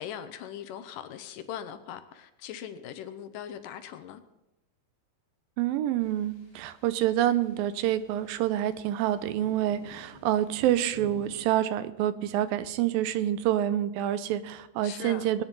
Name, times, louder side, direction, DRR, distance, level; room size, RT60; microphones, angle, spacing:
voice 1, 0.0-4.2 14.8-15.3, left 9 dB, 75° left, 2.3 m, -40 dB
voice 2, 5.6-15.4, right 12 dB, 85° right, 2.4 m, -27 dB
sound 1, 6.0-11.4, left 2 dB, 20° left, 2.1 m, -51 dB
19.5 x 9.7 x 5.3 m
omnidirectional pair, 4.1 m